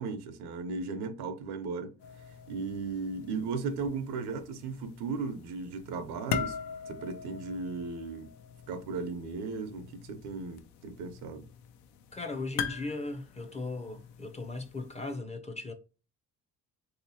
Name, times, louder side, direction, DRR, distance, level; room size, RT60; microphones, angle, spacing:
voice 1, 0.0-2.0 2.5-6.6 6.9-8.3 8.7-11.5, right 4 dB, 80° right, 0.8 m, -36 dB
sound 1, 2.0-15.2, left 7 dB, 90° left, 0.6 m, -42 dB
voice 2, 12.1-15.7, left 2 dB, 15° left, 0.4 m, -37 dB
3.3 x 2.9 x 2.6 m
cardioid pair, 100°, 39 cm